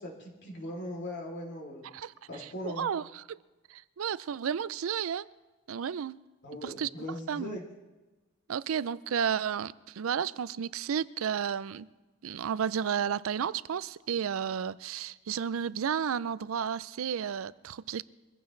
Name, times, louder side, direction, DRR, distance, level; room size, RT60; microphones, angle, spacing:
voice 1, 0.0-1.9 2.3-2.9 6.4-7.6, left 1 dB, 55° left, 0 dB, 3.4 m, -39 dB
voice 2, 2.4-3.4 3.7-5.3 5.7-6.2 6.6-6.9 7.3-7.6 8.5-11.9 12.2-18.0, right 7 dB, 70° right, 18 dB, 0.4 m, -32 dB
23.5 x 15.0 x 3.3 m, 1.2 s
head